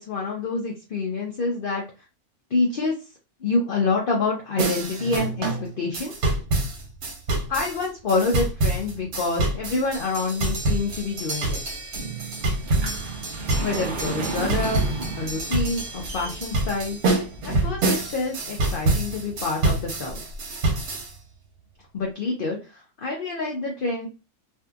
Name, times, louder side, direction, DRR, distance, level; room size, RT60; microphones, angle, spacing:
voice 1, 0.0-1.8 2.5-2.9 3.4-6.1 7.5-11.6 13.6-14.8 15.1-17.0 17.4-20.2 21.9-24.1, left 3 dB, 60° left, -1 dB, 0.5 m, -27 dB
sound 1, 4.6-21.1, right 2 dB, 85° right, 1.3 m, -27 dB
sound 2, 12.0-18.1 18.7-18.8 19.3-19.4 19.7-19.8, right 3 dB, 55° right, 0.5 m, -33 dB
2.7 x 2.6 x 2.3 m, 0.29 s
omnidirectional pair, 1.6 m